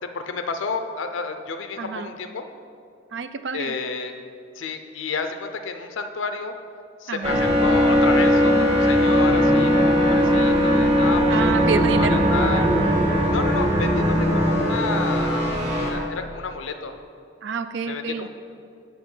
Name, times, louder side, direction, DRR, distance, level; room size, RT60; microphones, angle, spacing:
voice 1, 0.0-2.4 3.5-4.2 4.5-6.5 7.0-11.7 12.0-16.9 17.9-18.3, left 4 dB, 90° left, 7 dB, 0.5 m, -31 dB
voice 2, 1.8-2.1 3.1-3.7 7.1-7.4 11.3-12.2 17.4-18.3, right 5 dB, 65° right, 11 dB, 0.4 m, -28 dB
sound 1, 7.2-15.9, equal, 35° right, 1.5 m, -19 dB
7.1 x 5.5 x 5.4 m, 2.4 s
head